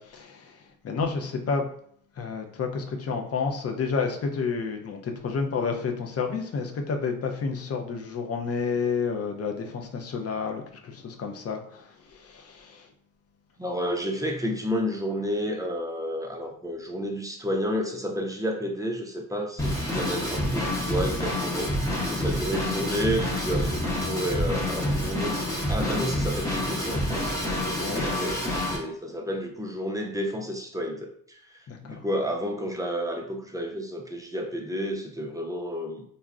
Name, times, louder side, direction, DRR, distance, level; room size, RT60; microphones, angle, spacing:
voice 1, 0.0-1.7 2.2-12.9 27.7-28.1 31.7-32.0, left 5 dB, 45° left, 4 dB, 0.5 m, -30 dB
voice 2, 13.6-21.7 22.1-27.4 27.7-36.0, equal, 10° right, 1 dB, 0.4 m, -31 dB
Drum kit / Drum, 19.6-28.8, left 1 dB, 10° left, 0.8 m, -28 dB
3.6 x 2.1 x 2.3 m, 0.63 s
cardioid pair, 85°, 35 cm